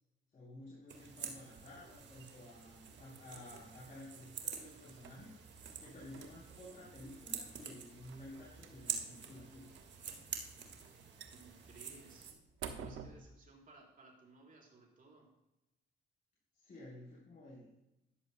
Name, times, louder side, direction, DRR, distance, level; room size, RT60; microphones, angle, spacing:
voice 1, 0.3-5.3 5.8-9.7 16.5-17.7, left 1 dB, 45° left, -6 dB, 3.6 m, -53 dB
sound 1, 0.9-12.3, right 7 dB, 65° right, 1.8 m, -47 dB
sound 2, 1.5-13.1, right 7 dB, 80° right, 1.1 m, -55 dB
voice 2, 11.3-12.3 12.6-15.3, right 3 dB, 45° right, -2 dB, 4.0 m, -60 dB
13.0 x 11.0 x 2.2 m, 0.92 s
cardioid pair, 90°, 20 cm